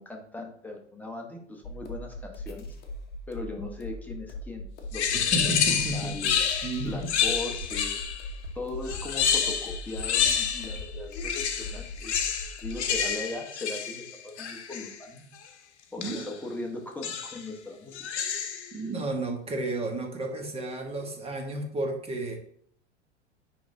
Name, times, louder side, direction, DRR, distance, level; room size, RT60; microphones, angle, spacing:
voice 1, 0.0-2.7 3.3-4.6 4.9-5.5 5.9-6.4 6.8-8.0 8.5-12.1 12.6-15.3 15.9-18.0, left 2 dB, 5° left, 0 dB, 1.2 m, -38 dB
sound 1, 1.6-13.1, left 1 dB, 25° left, 1.1 m, -40 dB
sound 2, 4.9-8.3 8.8-10.8 11.1-15.0 16.0-16.4 17.0-17.5 17.9-18.7, left 8 dB, 65° left, 0.9 m, -29 dB
voice 2, 5.3-6.2 6.6-7.1 16.0-16.2 18.7-22.4, right 2 dB, 15° right, 3 dB, 1.2 m, -32 dB
sound 3, 6.5-7.3 7.6-7.7 8.0-8.5 8.8-9.0 9.4-9.6 9.9-11.0 11.4-13.0 13.3-13.4, left 2 dB, 75° right, 1.5 m, -44 dB
9.9 x 3.6 x 2.7 m, 0.62 s
hypercardioid pair, 95°, 35 cm